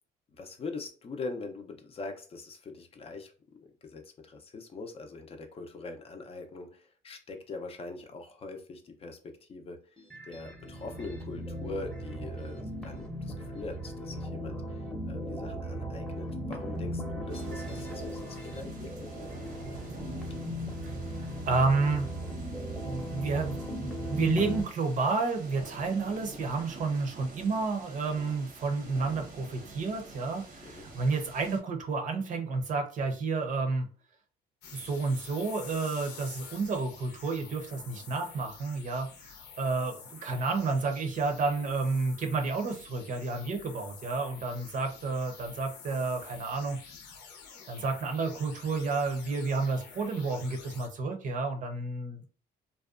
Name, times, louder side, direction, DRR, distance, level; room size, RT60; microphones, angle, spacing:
voice 1, 0.4-3.3 3.6-9.8 10.2-14.6 15.1-19.3 30.6-30.9, left 3 dB, 35° left, 5 dB, 0.5 m, -42 dB
sound 1, 10.0-24.6, equal, 5° left, 0.7 m, -37 dB
sound 2, 17.3-31.6, right 2 dB, 75° right, 0.9 m, -48 dB
voice 2, 21.2-22.1 22.8-33.9 34.7-39.1 39.6-46.8 47.7-52.2, right 4 dB, 50° right, 4 dB, 0.7 m, -30 dB
sound 3, 34.6-50.9, left 6 dB, 85° left, 0.7 m, -49 dB
2.6 x 2.2 x 2.4 m, 0.39 s
cardioid pair, 110°, 17 cm